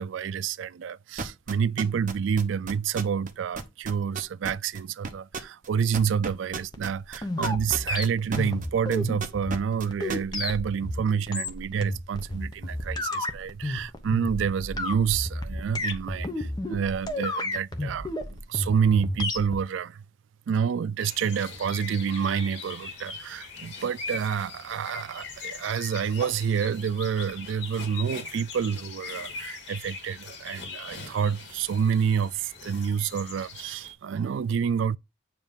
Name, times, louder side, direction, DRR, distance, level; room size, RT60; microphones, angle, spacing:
voice 1, 0.0-20.0 20.5-35.0, right 7 dB, 70° right, 0.3 m, -28 dB
sound 1, 1.2-3.3 3.6-8.7 8.9-10.2, right 4 dB, 40° right, 1.0 m, -33 dB
sound 2, 6.7-19.6, left 1 dB, 20° left, 1.0 m, -32 dB
sound 3, 21.0-33.9, left 4 dB, 65° left, 2.3 m, -41 dB
9.4 x 3.2 x 5.1 m
head